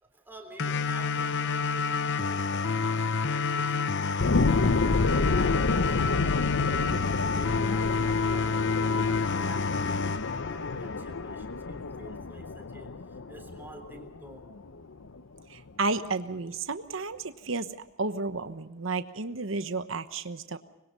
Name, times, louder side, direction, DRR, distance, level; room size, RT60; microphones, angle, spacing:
voice 1, 0.0-10.0 10.4-14.5, right 1 dB, 10° right, 4 dB, 3.6 m, -50 dB
sound 1, 0.6-11.6, left 5 dB, 60° left, 1.0 m, -29 dB
sound 2, 4.2-15.2 15.7-15.8, left 3 dB, 80° left, 0.8 m, -30 dB
voice 2, 15.5-17.7 18.0-20.6, right 3 dB, 70° right, 10 dB, 1.1 m, -32 dB
25.5 x 21.5 x 5.5 m, 0.94 s
head